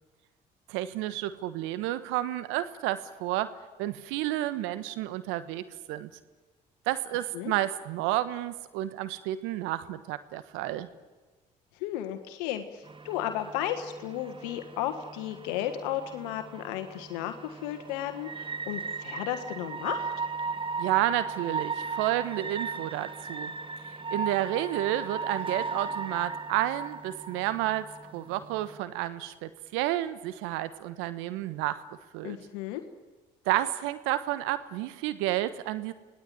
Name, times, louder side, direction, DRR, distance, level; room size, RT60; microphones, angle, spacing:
voice 1, 0.7-3.5 3.8-5.6 5.9-6.1 6.9-10.9 20.8-23.5 24.1-31.8 32.1-32.4 33.4-35.9, right 14 dB, 75° right, 14 dB, 1.3 m, -30 dB
voice 2, 11.7-20.1 32.2-32.8, left 11 dB, 80° left, 8 dB, 1.5 m, -34 dB
sound 1, 12.8-28.8, right 4 dB, 25° right, 1.2 m, -37 dB
26.5 x 19.0 x 9.2 m, 1.3 s
hypercardioid pair, 50°, 20 cm